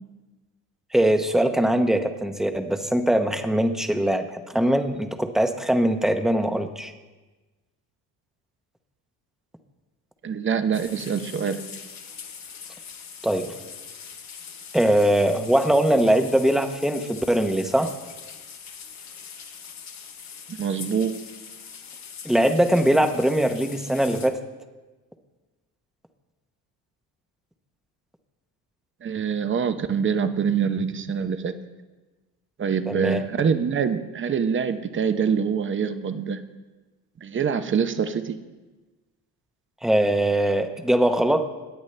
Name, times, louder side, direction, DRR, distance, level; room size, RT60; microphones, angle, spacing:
voice 1, 0.9-6.9 13.2-13.6 14.7-17.9 22.2-24.4 32.9-33.2 39.8-41.5, right 1 dB, ahead, 7 dB, 0.9 m, -21 dB
voice 2, 10.2-11.6 20.5-21.1 29.0-31.6 32.6-36.4 37.2-38.4, right 6 dB, 35° right, 10 dB, 0.8 m, -25 dB
sound 1, 10.7-24.3, left 6 dB, 50° left, 1.3 m, -42 dB
17.0 x 8.9 x 3.3 m, 1.2 s
cardioid pair, 100°, 36 cm